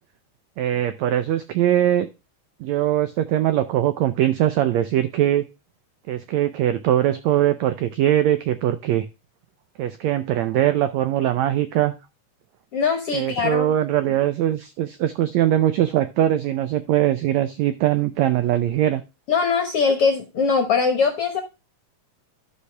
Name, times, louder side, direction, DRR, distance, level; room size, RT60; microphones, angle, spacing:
voice 1, 0.6-2.1 2.6-5.4 6.1-9.1 9.8-11.9 13.1-19.0, right 12 dB, 85° right, 11 dB, 1.5 m, -21 dB
voice 2, 12.7-13.7 19.3-21.4, left 5 dB, 65° left, 7 dB, 1.5 m, -21 dB
13.0 x 5.6 x 3.3 m, 0.27 s
omnidirectional pair, 3.9 m